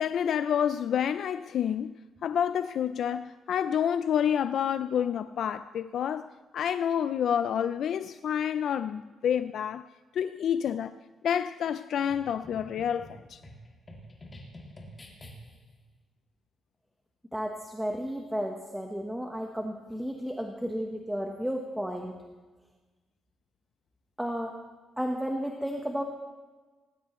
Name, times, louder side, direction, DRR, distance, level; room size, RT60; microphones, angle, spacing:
voice 1, 0.0-1.9 2.2-9.9 10.1-10.9 11.2-13.4, left 8 dB, 65° left, 0.4 m, -28 dB
sound 1, 12.1-15.7, equal, 20° left, 2.4 m, -48 dB
voice 2, 17.3-22.1 24.2-24.5 25.0-26.0, equal, 5° right, 1.1 m, -33 dB
19.0 x 18.5 x 3.1 m
cardioid pair, 160°, 0 cm